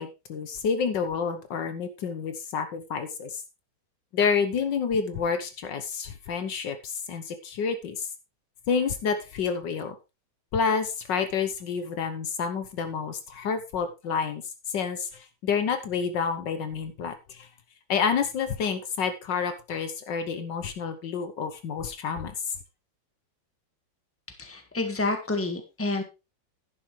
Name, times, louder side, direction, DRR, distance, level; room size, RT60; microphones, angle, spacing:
voice 1, 0.0-3.4 4.1-8.1 8.7-9.9 10.5-14.4 14.7-17.5 17.9-22.3, left 6 dB, 70° left, 9 dB, 1.6 m, -29 dB
voice 2, 24.4-26.0, left 2 dB, 5° left, 6 dB, 1.5 m, -29 dB
11.0 x 9.8 x 3.2 m, 0.27 s
omnidirectional pair, 2.1 m